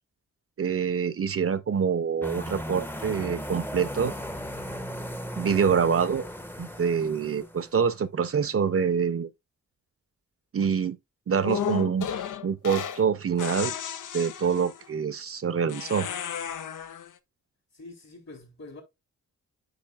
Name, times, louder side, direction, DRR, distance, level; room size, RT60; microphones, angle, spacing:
voice 1, 0.6-4.1 5.4-6.2 6.6-9.3 10.5-11.0 11.3-12.1 12.4-13.7 14.1-16.1, right 6 dB, 45° right, 0.6 m, -26 dB
sound 1, 2.2-7.7, equal, 5° left, 0.7 m, -37 dB
sound 2, 11.4-13.1 13.4-14.8 15.7-17.1, left 8 dB, 80° left, 0.7 m, -33 dB
voice 2, 17.7-18.8, left 2 dB, 60° left, 4.0 m, -45 dB
8.9 x 5.4 x 2.4 m
cardioid pair, 70°, 31 cm